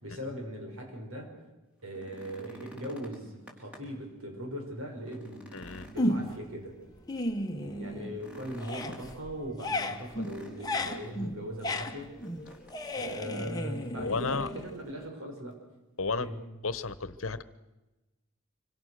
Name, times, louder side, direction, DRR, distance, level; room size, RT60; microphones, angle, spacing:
voice 1, 0.0-1.3 1.8-5.5 5.9-6.8 7.5-12.1 12.9-15.6 16.2-16.4, equal, 80° right, 2 dB, 6.0 m, -39 dB
sound 1, 1.8-4.1 4.5-4.6 5.0-6.9 8.1-9.2 10.1-11.0 12.2-12.8 13.1-13.2 13.8-14.4 15.5-15.6, right 1 dB, 5° right, 4.5 m, -51 dB
voice 2, 5.5-5.9 14.0-14.5 16.0-16.3 16.6-17.4, left 4 dB, 75° left, 16 dB, 1.1 m, -32 dB
sound 2, 6.0-6.5 6.9-8.3 8.5-15.1, left 1 dB, 20° left, 1.4 m, -34 dB
25.5 x 25.5 x 6.6 m, 1.1 s
head